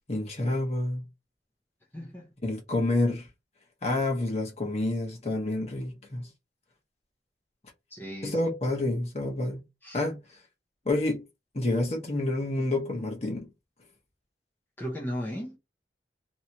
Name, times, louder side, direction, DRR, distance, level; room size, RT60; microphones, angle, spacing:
voice 1, 0.1-1.0 2.4-3.3 3.8-6.3 8.2-9.6 9.9-10.2 10.8-11.2 11.5-13.5, left 2 dB, 35° left, 1.0 m, -28 dB
voice 2, 1.9-2.3 7.9-8.4 9.8-10.0 14.8-15.6, equal, 10° left, 0.7 m, -36 dB
3.1 x 2.8 x 2.8 m
head